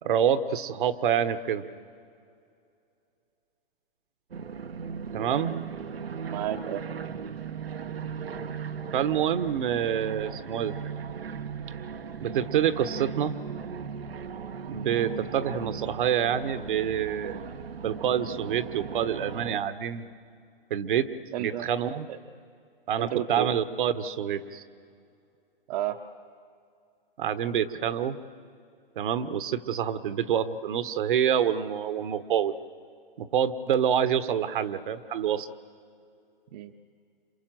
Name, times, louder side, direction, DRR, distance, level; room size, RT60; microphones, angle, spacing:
voice 1, 0.0-1.6 5.1-5.6 8.9-10.8 12.2-13.3 14.7-17.5 17.8-20.1 20.7-21.1 21.4-22.1 22.9-24.6 27.2-28.2 29.0-32.6 33.2-35.5, right 9 dB, 60° right, 11 dB, 1.2 m, -27 dB
sound 1, 4.3-19.6, right 6 dB, 90° right, 1.1 m, -37 dB
voice 2, 6.3-6.8 21.3-21.7 22.1-22.2 23.0-23.5 25.7-26.0 36.5-36.7, right 12 dB, 45° right, 5 dB, 0.9 m, -31 dB
27.5 x 26.5 x 7.6 m, 2.4 s
hypercardioid pair, 135°, 29 cm